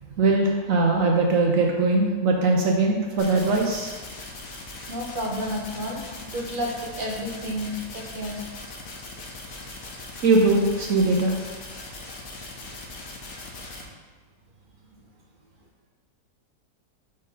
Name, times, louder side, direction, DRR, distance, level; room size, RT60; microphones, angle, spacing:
voice 1, 0.2-3.9 10.2-11.4, right 3 dB, 60° right, 0 dB, 1.0 m, -21 dB
sound 1, 3.2-13.8, left 2 dB, 55° left, 1.3 m, -40 dB
voice 2, 4.9-8.4, equal, 45° right, -1 dB, 0.7 m, -31 dB
5.1 x 4.3 x 5.4 m, 1.4 s
omnidirectional pair, 1.8 m